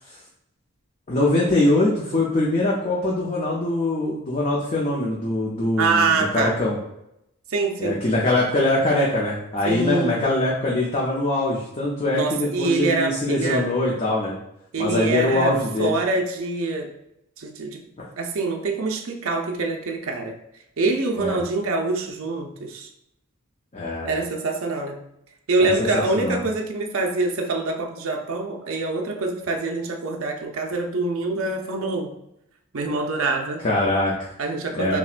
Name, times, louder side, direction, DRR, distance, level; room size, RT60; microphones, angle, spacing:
voice 1, 1.1-6.8 7.8-14.4 14.8-15.9 18.0-18.1 21.2-21.4 23.7-24.2 25.6-26.4 33.6-34.3 34.8-35.0, left 2 dB, 30° left, -4 dB, 0.6 m, -23 dB
voice 2, 5.8-6.5 7.5-8.0 9.6-10.3 12.1-13.7 14.7-15.5 15.8-16.9 17.4-17.8 18.2-20.3 20.8-22.9 24.0-25.0 25.5-32.1 32.7-33.6 34.4-35.0, right 3 dB, 70° right, 2 dB, 0.6 m, -25 dB
5.6 x 2.2 x 2.5 m, 0.80 s
head